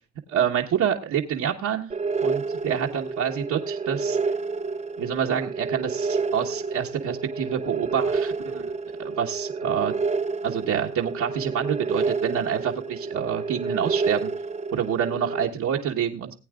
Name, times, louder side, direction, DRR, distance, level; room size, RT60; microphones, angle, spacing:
voice 1, 0.3-1.9 2.2-4.2 5.0-8.7 9.0-9.9 10.4-14.3 14.7-16.3, right 8 dB, 75° right, -1 dB, 1.3 m, -27 dB
sound 1, 1.9-15.5, right 4 dB, 25° right, 0.6 m, -29 dB
19.0 x 8.6 x 2.4 m, 0.30 s
cardioid pair, 90°, 30 cm